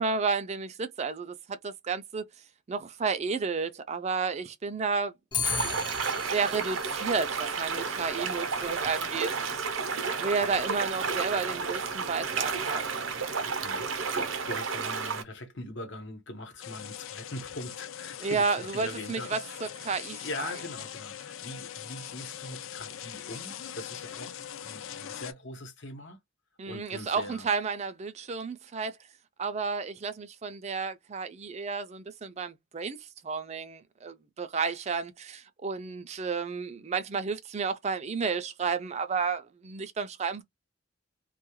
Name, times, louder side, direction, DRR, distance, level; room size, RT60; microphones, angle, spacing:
voice 1, 0.0-2.2 2.7-5.1 6.2-13.0 18.2-20.5 26.6-29.0 29.4-40.4, right 5 dB, 35° right, 0.4 m, -32 dB
Clock, 5.3-14.7, left 6 dB, 25° left, 0.5 m, -40 dB
sound 1, 5.4-15.2, right 5 dB, 80° right, 0.6 m, -32 dB
voice 2, 13.6-19.7 20.1-26.2 26.6-27.5, left 1 dB, 65° left, 0.9 m, -42 dB
sound 2, 16.6-25.3, left 10 dB, 80° left, 0.4 m, -41 dB
2.3 x 2.3 x 3.0 m
head